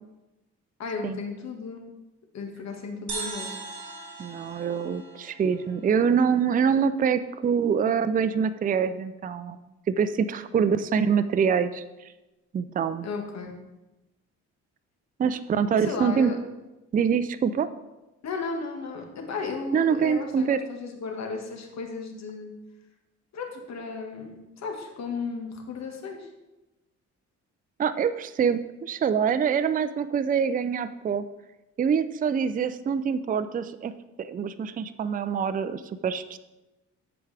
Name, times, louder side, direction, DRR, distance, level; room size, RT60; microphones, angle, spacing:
voice 1, 0.8-1.8 2.3-3.5 13.0-13.5 15.7-16.4 18.2-22.5 23.3-26.3, left 4 dB, 60° left, 3 dB, 1.6 m, -34 dB
sound 1, 3.1-6.6, right 4 dB, 60° right, 2.7 m, -39 dB
voice 2, 4.2-9.6 9.9-11.8 12.5-13.1 15.2-16.3 16.9-17.7 19.7-20.6 27.8-31.2 31.8-33.9 34.2-36.4, right 7 dB, 30° right, 12 dB, 0.4 m, -25 dB
13.5 x 4.9 x 3.4 m, 1.0 s
cardioid pair, 90°, 30 cm